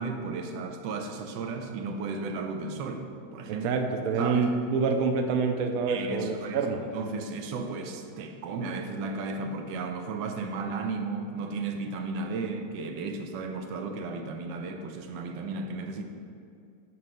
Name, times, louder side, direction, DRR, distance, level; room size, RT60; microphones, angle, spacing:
voice 1, 0.0-3.6 4.2-4.5 5.9-6.7 6.9-16.0, right 3 dB, 85° right, 5 dB, 1.3 m, -34 dB
voice 2, 3.5-6.8, right 4 dB, 70° right, 5 dB, 0.9 m, -27 dB
8.5 x 3.2 x 5.2 m, 2.4 s
omnidirectional pair, 1.9 m